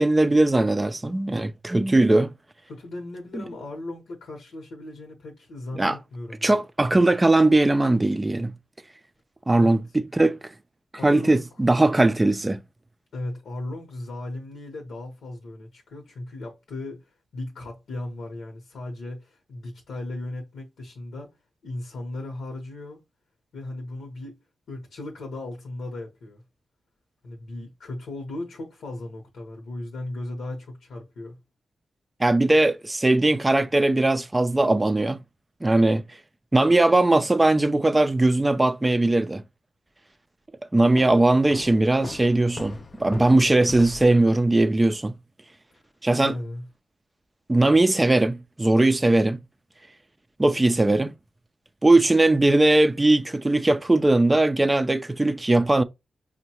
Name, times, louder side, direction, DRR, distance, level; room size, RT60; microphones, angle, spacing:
voice 1, 0.0-2.3 3.3-3.4 5.8-6.0 6.4-8.5 9.5-10.4 11.0-12.6 32.2-35.2 35.6-36.0 36.5-39.4 40.7-45.1 46.0-46.3 47.5-49.4 50.4-51.1 51.8-55.8, right 2 dB, 20° right, 0.4 m, -20 dB
voice 2, 2.7-6.6 9.5-9.7 11.0-11.4 13.1-21.3 21.6-23.0 23.5-24.4 24.7-26.4 27.2-31.4 46.2-46.6, left 2 dB, 90° left, 0.9 m, -36 dB
Walk footsteps, 41.0-44.3, left 3 dB, 45° left, 0.5 m, -40 dB
5.1 x 2.2 x 2.8 m
cardioid pair, 70°, 0 cm